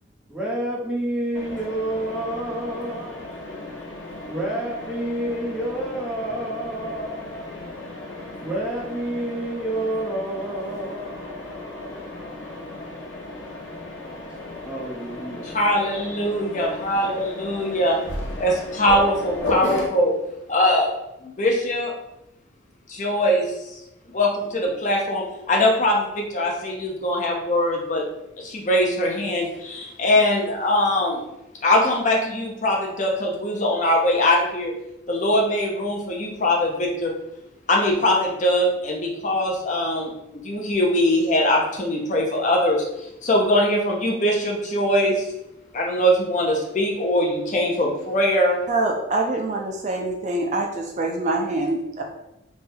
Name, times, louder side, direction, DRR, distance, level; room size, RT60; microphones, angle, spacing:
voice 1, 0.3-3.3 4.3-7.4 8.4-13.1 14.6-15.5, right 1 dB, 5° right, -6 dB, 0.9 m, -29 dB
Mechanisms, 1.3-19.9, left 2 dB, 80° left, 0.8 m, -35 dB
voice 2, 15.4-18.0 18.4-20.2 20.5-20.9 21.2-21.9 22.9-23.8 24.1-28.0 28.4-31.2 31.6-34.7 35.1-37.1 37.7-45.2 45.7-48.6, left 1 dB, 40° left, 0 dB, 0.6 m, -22 dB
voice 3, 48.7-52.0, right 2 dB, 40° right, 2 dB, 0.4 m, -25 dB
3.4 x 2.3 x 4.3 m, 0.87 s
head